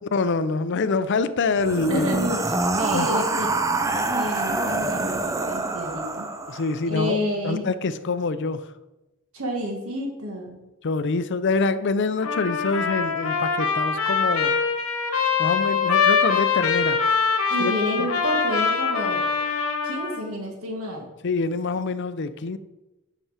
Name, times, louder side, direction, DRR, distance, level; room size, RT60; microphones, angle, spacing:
voice 1, 0.0-2.1 2.9-3.1 6.5-7.2 7.4-8.6 10.8-14.5 15.4-17.0 17.6-17.7 18.0-18.1 21.2-22.6, left 3 dB, 55° left, 13 dB, 0.5 m, -25 dB
sound 1, 1.5-6.8, right 2 dB, 15° right, 0.5 m, -26 dB
voice 2, 1.9-3.5 3.9-6.3 6.8-7.7 9.3-10.6 17.5-19.3 19.8-21.1, equal, 70° right, 1 dB, 1.6 m, -29 dB
Trumpet, 12.2-20.2, left 5 dB, 85° left, 1.4 m, -23 dB
9.0 x 6.0 x 4.9 m, 1.0 s
head